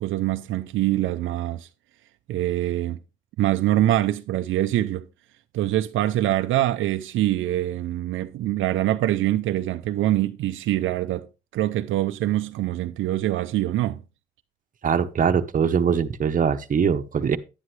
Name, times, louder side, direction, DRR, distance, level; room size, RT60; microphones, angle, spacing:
voice 1, 0.0-1.7 2.3-3.0 3.4-5.1 5.5-11.3 11.5-14.0, right 14 dB, 80° right, 0.5 m, -24 dB
voice 2, 14.8-17.4, right 7 dB, 40° right, 0.9 m, -22 dB
10.5 x 9.6 x 3.2 m
cardioid pair, 90°, 20 cm